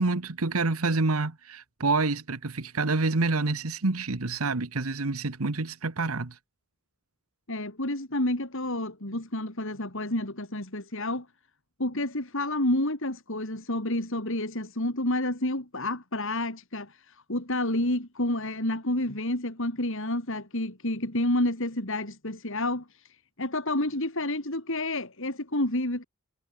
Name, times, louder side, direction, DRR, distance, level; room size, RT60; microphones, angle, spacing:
voice 1, 0.0-6.3, right 3 dB, 85° right, 1.4 m, -27 dB
voice 2, 7.5-11.3 11.8-26.0, left 1 dB, 65° left, 5.1 m, -29 dB
head